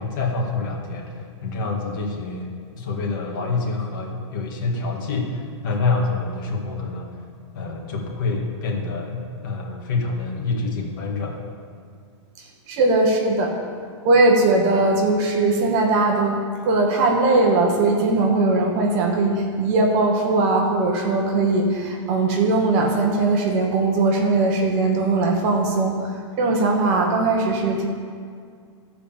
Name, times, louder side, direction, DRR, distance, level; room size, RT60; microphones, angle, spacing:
voice 1, 0.0-7.1 7.5-11.4, left 3 dB, 40° left, 0 dB, 1.9 m, -27 dB
voice 2, 12.7-13.5 14.0-26.1 26.4-27.9, right 3 dB, 30° right, 1 dB, 1.1 m, -20 dB
15.0 x 5.0 x 7.1 m, 2.1 s
hypercardioid pair, 170°, 16 cm